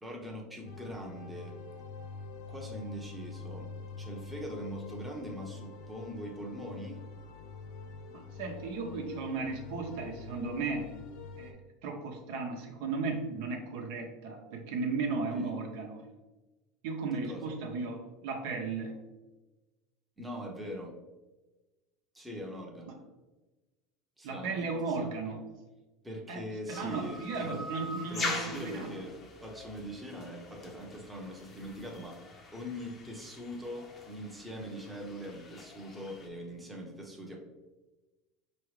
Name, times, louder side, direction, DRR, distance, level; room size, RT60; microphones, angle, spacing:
voice 1, 0.0-1.5 2.5-7.0 15.3-15.5 17.2-17.5 20.2-20.9 22.1-23.0 24.2-25.0 26.0-27.6 28.1-29.1 29.4-37.4, equal, 5° right, -1 dB, 0.8 m, -42 dB
sound 1, 0.6-11.5, left 4 dB, 65° left, 0.5 m, -45 dB
voice 2, 8.1-10.9 11.4-16.0 16.8-19.0 24.2-25.4 26.3-26.4 26.7-28.9, right 4 dB, 75° right, 1 dB, 0.9 m, -35 dB
sound 2, 26.7-36.3, left 3 dB, 25° left, 0.7 m, -43 dB
4.7 x 3.0 x 3.2 m, 1.1 s
supercardioid pair, 135°, 0 cm